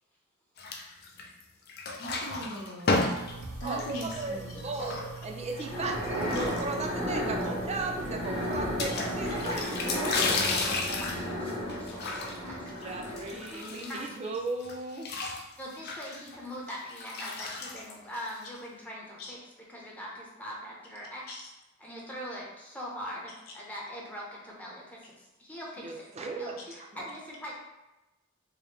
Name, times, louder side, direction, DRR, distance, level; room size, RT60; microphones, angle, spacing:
sound 1, 0.6-1.4 1.7-5.5 6.1-7.1 7.4-7.5 7.7-7.8 8.8-14.3 14.6-18.6, left 3 dB, 50° left, 0.5 m, -34 dB
voice 1, 2.0-3.1 3.6-4.5 17.4-17.5 19.2-19.3 21.3-21.4, equal, 85° left, -2 dB, 0.8 m, -40 dB
sound 2, 3.2-9.6, right 4 dB, 75° right, 0.7 m, -44 dB
voice 2, 3.6-9.8 12.8-15.1 25.8-27.1, right 3 dB, 30° right, 2 dB, 0.4 m, -36 dB
sound 3, 5.5-13.6, equal, 30° left, 1.0 m, -34 dB
voice 3, 9.6-14.2 15.6-19.4 19.7-21.5 21.8-27.5, equal, 5° left, -4 dB, 0.7 m, -42 dB
4.8 x 2.0 x 3.2 m, 1.0 s
head